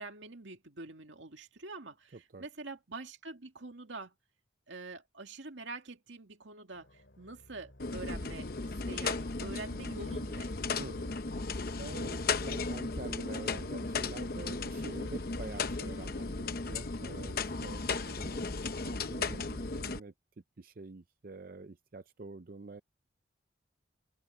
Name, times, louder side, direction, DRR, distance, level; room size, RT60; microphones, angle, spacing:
voice 1, 0.0-4.1 4.7-10.5 17.9-18.2, right 3 dB, 80° right, 2.2 m, -46 dB
voice 2, 2.1-2.5 10.8-11.1 11.8-17.9 18.2-18.5 18.8-20.1 20.6-22.8, right 3 dB, 50° right, 0.5 m, -47 dB
sound 1, 6.7-16.3, left 2 dB, 75° left, 2.6 m, -58 dB
sound 2, 7.8-20.0, left 4 dB, 50° left, 0.8 m, -35 dB
open air
head